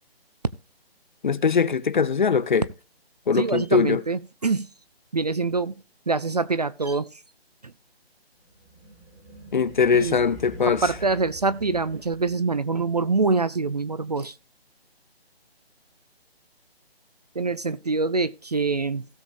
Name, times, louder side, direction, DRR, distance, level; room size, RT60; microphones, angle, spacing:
voice 1, 1.2-2.7 3.3-4.0 9.5-10.8, left 5 dB, 50° left, 0.5 m, -21 dB
voice 2, 3.4-4.7 5.1-5.8 6.1-7.1 9.9-10.2 10.7-14.3 17.4-19.0, right 3 dB, 40° right, 0.4 m, -25 dB
sound 1, 8.5-12.7, right 2 dB, 15° right, 3.6 m, -44 dB
16.5 x 7.1 x 2.5 m
figure-of-eight pair, 160°, 32 cm